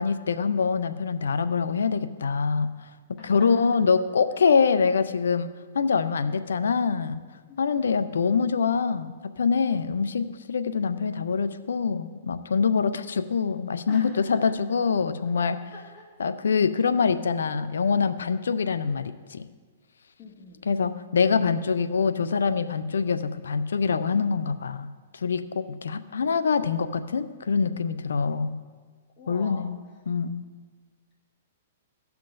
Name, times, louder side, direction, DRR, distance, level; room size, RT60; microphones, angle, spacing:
voice 1, 0.0-2.7 3.2-7.2 7.6-15.6 16.2-19.4 20.6-28.5 29.3-29.7 30.1-30.4, left 5 dB, 85° left, 11 dB, 0.4 m, -25 dB
voice 2, 3.2-3.5 4.3-4.4 6.2-6.4 7.5-7.9 13.9-14.4 15.5-16.1 20.2-20.6 29.2-29.7, left 4 dB, 35° left, -2 dB, 1.5 m, -44 dB
16.5 x 5.8 x 2.5 m, 1.5 s
hypercardioid pair, 125°, 0 cm